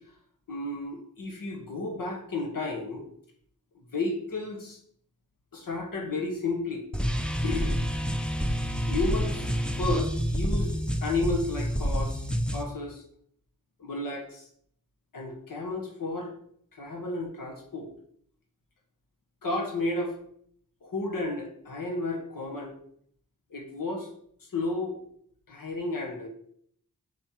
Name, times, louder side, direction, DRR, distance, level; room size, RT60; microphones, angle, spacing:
voice 1, 0.5-3.0 3.7-4.8 5.5-6.8 7.4-7.8 8.9-12.3 12.5-13.0 13.8-14.4 15.1-16.3 16.8-17.9 19.4-20.2 20.8-22.7 23.5-24.1 24.5-25.0 25.5-26.3, left 2 dB, 75° left, 1 dB, 1.6 m, -32 dB
sound 1, 6.9-12.6, equal, 5° left, 0.7 m, -28 dB
5.7 x 5.4 x 4.6 m, 0.65 s
wide cardioid pair, 80°, 33 cm